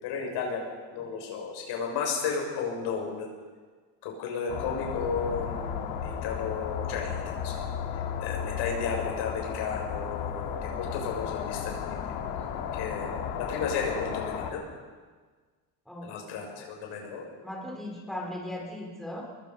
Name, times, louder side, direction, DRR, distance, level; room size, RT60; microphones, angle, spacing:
voice 1, 0.0-3.3 4.0-7.6 7.9-12.0 12.7-14.6 16.0-17.2, left 5 dB, 65° left, 0 dB, 6.8 m, -33 dB
sound 1, 4.5-14.5, left 8 dB, 85° left, 2.8 m, -34 dB
voice 2, 15.9-16.2 16.5-16.7 17.4-19.2, left 1 dB, ahead, -2 dB, 4.2 m, -38 dB
24.5 x 22.0 x 5.5 m, 1.5 s
cardioid pair, 145°, 43 cm